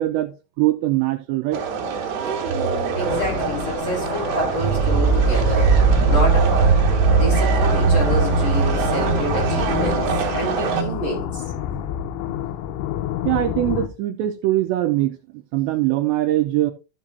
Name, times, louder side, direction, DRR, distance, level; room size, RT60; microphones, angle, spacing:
voice 1, 0.0-1.6 13.3-15.2 15.5-16.7, right 15 dB, 85° right, 2.6 m, -22 dB
sound 1, 1.5-10.8, right 6 dB, 65° right, 3.3 m, -26 dB
sound 2, 2.4-10.9, right 5 dB, 30° right, 3.9 m, -20 dB
voice 2, 2.9-5.7 6.1-6.7 7.2-11.4, left 1 dB, 25° left, 4.7 m, -28 dB
sound 3, 3.1-13.9, left 10 dB, 85° left, 3.3 m, -29 dB
13.5 x 7.4 x 2.6 m
omnidirectional pair, 5.6 m